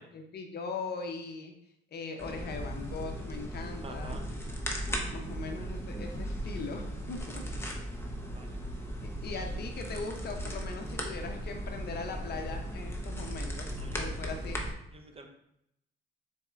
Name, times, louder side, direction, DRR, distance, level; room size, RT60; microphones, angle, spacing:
voice 1, 0.1-1.5 1.9-4.2 5.1-7.4 9.2-14.6, left 4 dB, 55° left, 4 dB, 0.6 m, -40 dB
sound 1, 2.2-14.7, equal, 10° left, 0.8 m, -37 dB
voice 2, 3.8-4.2 4.9-5.0 8.3-8.6 13.8-14.4 14.9-15.3, right 3 dB, 30° right, 4 dB, 0.7 m, -48 dB
4.1 x 4.1 x 2.4 m, 0.78 s
cardioid pair, 90°, 20 cm